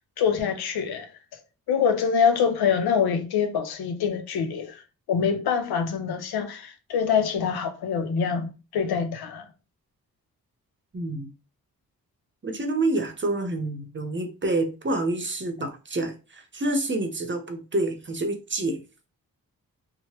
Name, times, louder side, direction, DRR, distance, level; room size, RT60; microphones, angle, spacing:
voice 1, 0.2-1.4 1.7-4.8 5.1-9.5, left 6 dB, 90° left, 0.6 m, -25 dB
voice 2, 10.9-11.3 12.4-18.8, right 2 dB, 30° right, 0.8 m, -28 dB
3.0 x 2.1 x 2.9 m
cardioid pair, 50°, 37 cm